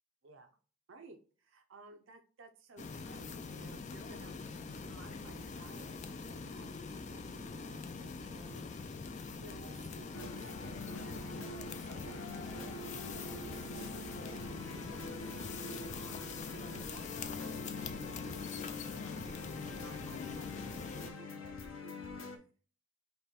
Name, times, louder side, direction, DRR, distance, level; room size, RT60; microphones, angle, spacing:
voice 1, 0.2-0.6 0.9-8.9 9.2-16.5 16.9-19.4 19.7-22.5, right 3 dB, 75° right, 5 dB, 0.6 m, -57 dB
sound 1, 2.8-21.1, left 4 dB, 35° left, 0.4 m, -44 dB
sound 2, 10.1-22.4, left 3 dB, 85° left, 0.8 m, -45 dB
5.3 x 2.2 x 4.3 m, 0.39 s
head